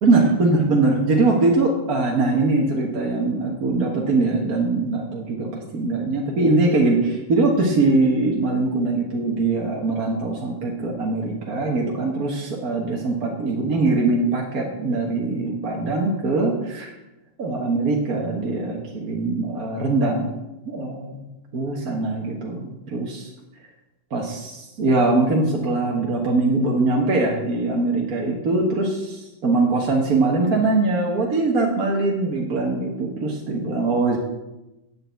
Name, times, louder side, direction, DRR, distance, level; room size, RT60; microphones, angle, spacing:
voice 1, 0.0-16.9 17.4-20.4 20.7-21.2 21.5-23.3 24.1-34.2, right 3 dB, 55° right, -2 dB, 1.8 m, -22 dB
9.0 x 6.7 x 8.1 m, 0.97 s
omnidirectional pair, 2.0 m